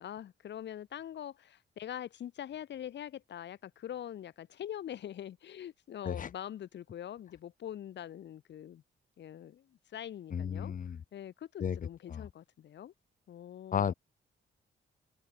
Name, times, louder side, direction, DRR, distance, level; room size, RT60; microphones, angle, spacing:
voice 1, 0.0-8.8 9.2-10.7 11.1-12.9 13.3-13.9, left 10 dB, 65° left, 2.9 m, -43 dB
voice 2, 10.3-11.0 11.6-11.8 12.1-12.3 13.7-13.9, left 7 dB, 45° left, 5.0 m, -33 dB
wide cardioid pair, 170°, 20 cm